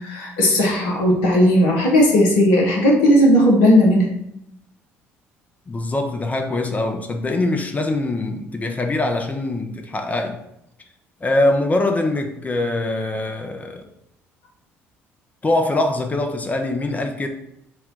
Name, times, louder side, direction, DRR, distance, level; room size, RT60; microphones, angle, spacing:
voice 1, 0.0-4.1, equal, 65° left, -1 dB, 0.7 m, -16 dB
voice 2, 5.7-10.4 11.2-13.8 15.4-17.3, left 2 dB, 20° left, 5 dB, 0.5 m, -23 dB
4.2 x 2.2 x 3.7 m, 0.80 s
figure-of-eight pair, 50°, 7 cm